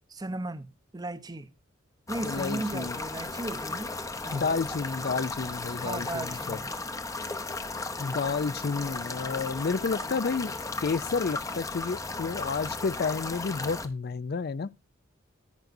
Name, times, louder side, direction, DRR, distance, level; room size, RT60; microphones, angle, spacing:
voice 1, 0.1-1.5 2.1-3.9 4.2-4.5 5.8-6.7, right 2 dB, 20° right, 0.7 m, -36 dB
sound 1, 2.1-13.9, left 3 dB, 15° left, 0.7 m, -35 dB
voice 2, 2.2-3.0 4.3-6.6 8.0-10.5 10.8-14.7, left 4 dB, 50° left, 0.4 m, -30 dB
10.5 x 9.1 x 2.6 m
head